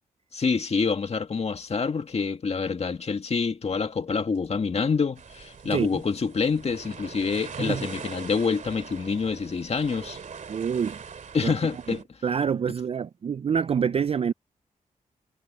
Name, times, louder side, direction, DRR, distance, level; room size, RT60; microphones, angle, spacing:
voice 1, 0.3-10.2 11.3-12.0, left 5 dB, 45° left, 2.0 m, -27 dB
sound 1, 5.2-12.0, right 6 dB, 60° right, 2.4 m, -42 dB
voice 2, 10.5-11.0 11.4-11.5 12.2-14.3, right 7 dB, 45° right, 0.4 m, -26 dB
cardioid pair, 85°, 14 cm